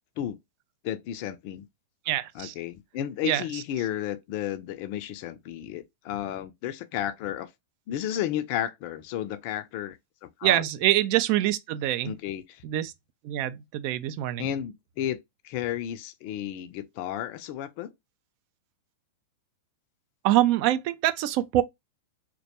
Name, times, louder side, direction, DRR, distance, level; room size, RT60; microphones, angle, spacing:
voice 1, 0.8-1.7 2.3-7.5 7.9-10.7 12.0-12.6 14.4-15.2 15.4-17.9, left 11 dB, 55° left, 0.4 m, -33 dB
voice 2, 2.1-2.5 3.2-3.4 10.4-12.1 12.6-12.9 13.2-14.4 20.2-21.6, right 14 dB, 50° right, 0.3 m, -25 dB
2.2 x 2.2 x 2.8 m
hypercardioid pair, 105°, 0 cm